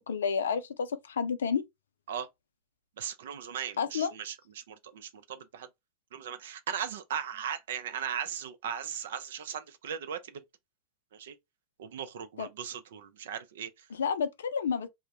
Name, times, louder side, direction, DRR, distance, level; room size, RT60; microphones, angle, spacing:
voice 1, 0.1-1.6 3.8-4.1 12.4-12.5 13.9-14.9, left 6 dB, 80° left, 0.4 m, -30 dB
voice 2, 3.0-5.7 6.1-10.4 11.1-11.3 11.8-13.9, right 8 dB, 70° right, 0.4 m, -38 dB
2.2 x 2.0 x 2.8 m
hypercardioid pair, 90°, 0 cm